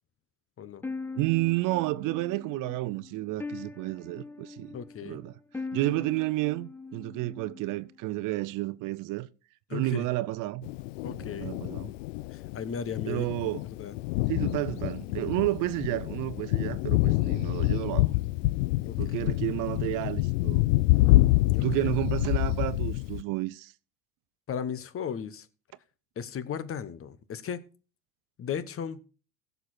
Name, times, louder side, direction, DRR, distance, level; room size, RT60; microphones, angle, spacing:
sound 1, 0.8-7.9, left 4 dB, 5° left, 0.4 m, -41 dB
voice 1, 1.2-4.8 5.0-5.3 5.7-9.3 9.7-10.7 11.2-11.9 13.1-13.6 14.3-18.1 19.0-20.6 21.6-23.7, right 19 dB, 50° right, 0.7 m, -31 dB
voice 2, 4.7-5.2 9.7-10.1 11.0-11.6 12.3-13.3 13.7-13.9 18.8-19.2 21.5-21.9 24.5-25.5 26.2-27.6 28.4-29.0, left 7 dB, 35° left, 1.1 m, -36 dB
Thunder, 10.6-23.2, left 18 dB, 65° left, 0.5 m, -27 dB
16.0 x 6.8 x 4.3 m
hypercardioid pair, 80°, 40 cm